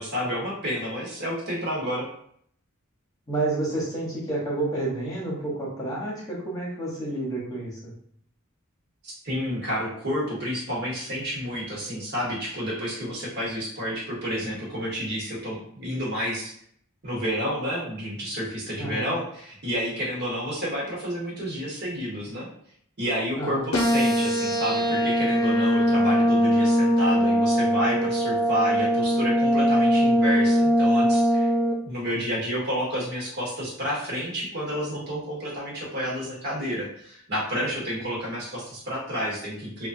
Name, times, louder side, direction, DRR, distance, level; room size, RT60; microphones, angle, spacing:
voice 1, 0.0-2.1 9.0-16.5 17.0-22.5 23.0-31.5 31.8-39.9, equal, 50° right, -4 dB, 1.1 m, -30 dB
voice 2, 3.3-7.9 18.8-19.1 23.4-23.7, right 2 dB, 15° left, -6 dB, 1.0 m, -30 dB
sound 1, 23.7-31.7, equal, 85° left, 0.7 m, -21 dB
3.1 x 2.3 x 2.6 m, 0.64 s
head